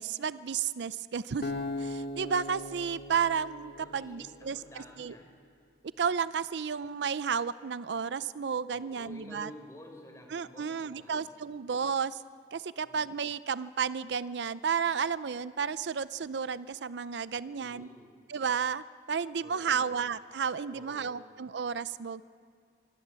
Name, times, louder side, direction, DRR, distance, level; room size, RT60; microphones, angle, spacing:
voice 1, 0.0-1.5 1.8-5.1 6.0-9.5 10.3-12.2 12.5-17.9 18.3-22.2, right 6 dB, 75° right, 16 dB, 0.5 m, -32 dB
Acoustic guitar, 1.4-4.6, left 1 dB, 60° left, 1.9 m, -38 dB
voice 2, 3.8-5.3 8.7-11.6 12.8-13.0 17.5-18.1 19.4-19.9 20.7-21.2, left 1 dB, 15° left, 2 dB, 3.8 m, -51 dB
24.5 x 14.5 x 7.5 m, 2.3 s
head